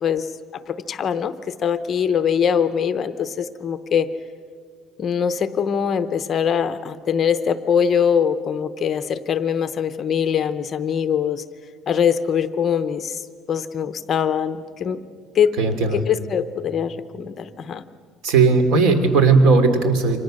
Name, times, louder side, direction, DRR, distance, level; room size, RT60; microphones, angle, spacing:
voice 1, 0.0-1.3 1.6-4.1 5.0-11.4 11.9-13.2 13.5-15.0 15.3-15.5 15.9-17.8, left 7 dB, 30° left, 12 dB, 0.8 m, -22 dB
voice 2, 15.6-16.0 18.2-20.2, right 4 dB, 70° right, 8 dB, 2.9 m, -16 dB
28.5 x 25.5 x 6.5 m, 2.1 s
cardioid pair, 155°, 0 cm